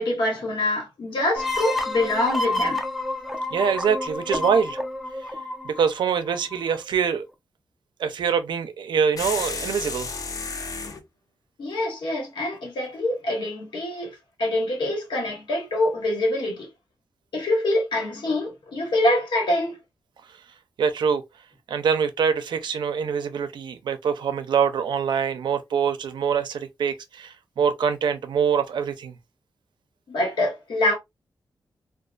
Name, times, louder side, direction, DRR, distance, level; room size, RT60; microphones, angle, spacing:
voice 1, 0.0-2.8 11.6-16.7 17.3-19.8 30.1-31.0, left 1 dB, 85° left, 1.2 m, -25 dB
sound 1, 1.4-6.8, left 2 dB, ahead, 0.4 m, -29 dB
voice 2, 3.5-4.8 5.6-7.2 8.0-10.1 20.8-21.2 21.7-29.1, right 7 dB, 80° right, 0.5 m, -24 dB
sound 2, 9.2-11.0, left 4 dB, 50° left, 0.5 m, -31 dB
2.3 x 2.3 x 2.4 m
wide cardioid pair, 125°, 8 cm